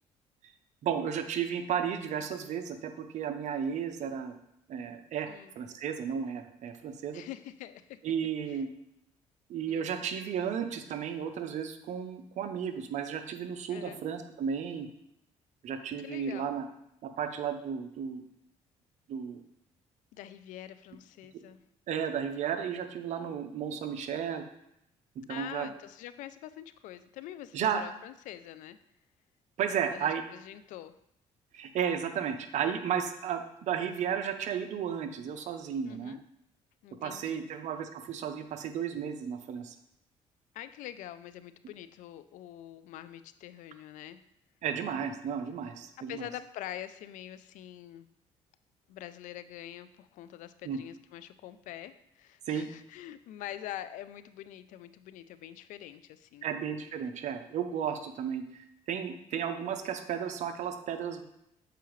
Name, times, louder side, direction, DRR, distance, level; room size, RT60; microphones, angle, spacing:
voice 1, 0.8-4.3 4.7-5.3 5.6-7.2 8.0-8.7 9.5-14.9 15.6-16.6 17.0-18.3 19.1-19.4 21.9-24.4 25.3-25.7 27.5-27.8 29.6-30.2 31.5-36.2 37.0-39.7 44.6-46.3 50.6-50.8 52.5-52.7 56.4-61.2, right 8 dB, 65° right, 8 dB, 0.7 m, -33 dB
voice 2, 7.1-8.0 9.7-10.0 13.7-14.0 16.0-16.6 20.1-21.6 25.3-28.8 29.7-30.9 35.9-36.2 36.8-37.5 40.5-44.2 46.1-48.1 48.9-56.5, left 12 dB, 80° left, 13 dB, 0.4 m, -45 dB
6.9 x 4.7 x 3.1 m, 0.79 s
cardioid pair, 90°, 13 cm